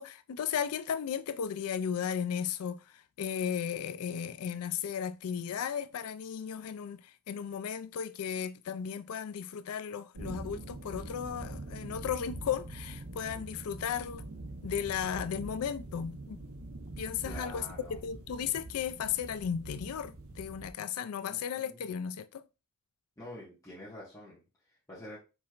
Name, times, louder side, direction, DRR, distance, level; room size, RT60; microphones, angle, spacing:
voice 1, 0.0-14.2 14.6-16.4 17.0-17.6 18.0-22.4, left 8 dB, 85° left, 0.4 m, -35 dB
sound 1, 10.2-20.7, right 2 dB, 75° right, 0.8 m, -44 dB
voice 2, 17.2-18.0 18.5-18.6 21.2-21.8 23.2-25.2, left 1 dB, 15° left, 1.5 m, -47 dB
4.7 x 4.3 x 2.4 m
head